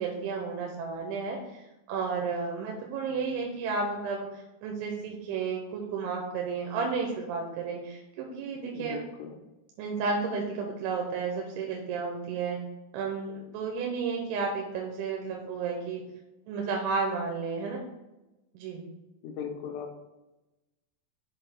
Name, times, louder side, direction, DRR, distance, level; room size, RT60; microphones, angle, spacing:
voice 1, 0.0-9.0 9.8-12.6 12.9-16.0 16.5-17.8 18.5-18.9, right 5 dB, 90° right, 0 dB, 3.2 m, -32 dB
voice 2, 8.7-9.4 19.2-20.0, left 6 dB, 80° left, 4 dB, 2.7 m, -38 dB
7.8 x 3.9 x 4.4 m, 1.0 s
omnidirectional pair, 5.4 m